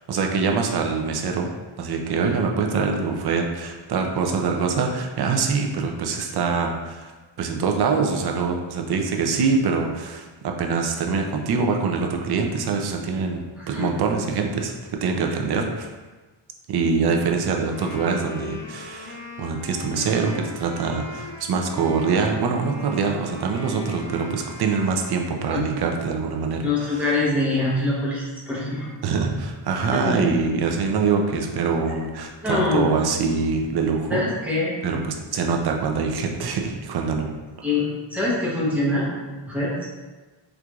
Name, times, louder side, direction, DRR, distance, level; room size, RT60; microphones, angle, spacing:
voice 1, 0.0-1.5 1.8-7.1 7.4-15.9 16.7-27.0 29.0-34.2 34.8-37.3, right 5 dB, 55° right, 2 dB, 0.5 m, -24 dB
voice 2, 13.6-13.9 25.5-25.6 26.6-28.9 29.9-30.3 32.4-32.9 34.1-34.7 37.6-39.7, left 2 dB, 5° right, -8 dB, 0.8 m, -24 dB
Wind instrument woodwind instrument, 17.6-25.7, left 1 dB, 45° left, 0.4 m, -39 dB
4.5 x 2.5 x 2.3 m, 1.3 s
wide cardioid pair, 170°, 47 cm